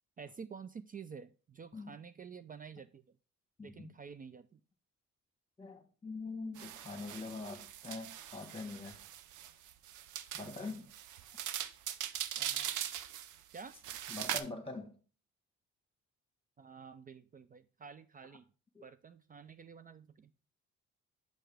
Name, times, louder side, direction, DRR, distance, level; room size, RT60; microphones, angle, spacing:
voice 1, 0.2-3.0 3.6-4.6 10.4-10.7 12.4-12.7 13.5-13.8 16.6-18.5 18.8-20.3, right 6 dB, 30° right, 0.4 m, -50 dB
voice 2, 3.6-3.9 5.6-9.0 10.3-10.9 14.1-14.9, left 3 dB, 20° left, 1.4 m, -43 dB
sound 1, 6.5-14.4, right 11 dB, 75° right, 0.6 m, -41 dB
6.3 x 5.7 x 3.3 m
cardioid pair, 90°, 30 cm